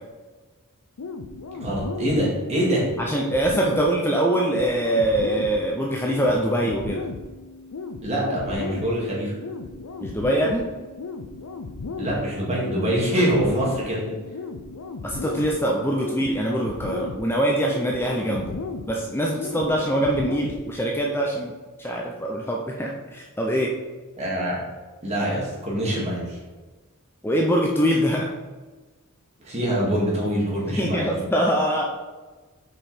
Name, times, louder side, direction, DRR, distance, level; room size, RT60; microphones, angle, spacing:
sound 1, 1.0-21.0, left 3 dB, 85° left, 0.6 m, -36 dB
voice 1, 1.5-2.9 8.0-9.3 12.0-14.1 24.2-24.6 25.0-26.4 29.5-31.2, equal, 30° right, -5 dB, 2.2 m, -24 dB
voice 2, 3.0-7.1 10.0-10.7 15.0-18.6 18.9-21.5 21.8-23.7 27.2-28.3 30.8-32.0, right 1 dB, 10° left, -1 dB, 0.6 m, -23 dB
5.5 x 5.5 x 4.3 m, 1.3 s
head